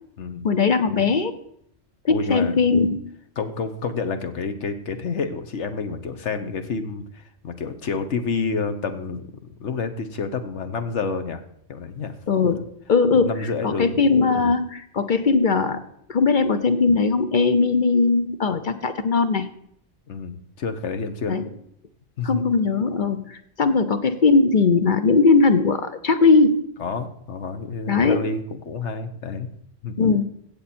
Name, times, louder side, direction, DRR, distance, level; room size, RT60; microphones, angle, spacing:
voice 1, 0.4-1.4 2.0-3.0 12.3-12.6 12.9-15.8 16.1-19.5 21.3-21.5 22.2-26.6 27.9-28.2 30.0-30.2, left 4 dB, 45° left, 9 dB, 0.8 m, -19 dB
voice 2, 2.1-2.6 3.4-11.4 11.7-12.1 13.2-14.0 20.1-21.4 22.2-22.5 26.8-29.5 29.8-29.9, left 4 dB, 65° left, 9 dB, 1.2 m, -29 dB
16.5 x 7.2 x 4.3 m, 0.71 s
omnidirectional pair, 1.3 m